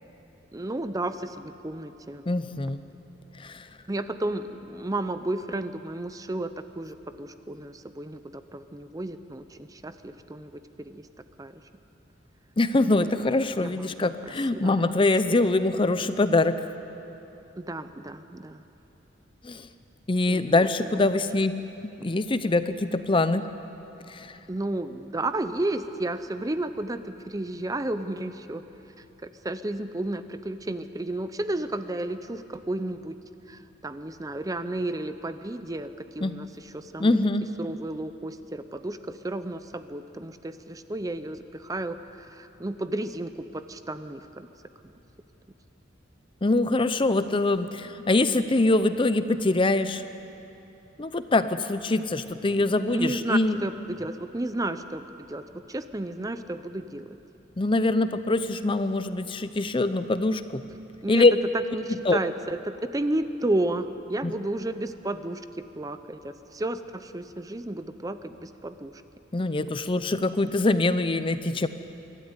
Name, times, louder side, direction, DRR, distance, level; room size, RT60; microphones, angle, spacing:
voice 1, 0.5-2.2 3.9-11.1 11.4-11.5 13.6-13.9 14.2-14.3 14.6-14.9 15.3-15.4 17.6-18.6 20.3-21.1 24.5-28.6 29.2-33.2 33.5-37.2 37.6-44.5 52.6-57.2 61.0-61.3 61.7-65.4 65.8-68.9, right 2 dB, 20° right, 11 dB, 0.6 m, -32 dB
voice 2, 2.3-2.8 3.4-3.6 12.6-16.7 19.4-19.7 20.1-21.5 21.8-23.5 24.1-24.3 36.2-36.3 37.0-37.5 46.4-50.0 51.0-53.6 57.6-60.6 61.1-61.3 61.9-62.2 64.2-64.3 69.3-71.7, left 2 dB, 25° left, 11 dB, 0.6 m, -24 dB
24.0 x 13.0 x 9.6 m, 3.0 s
head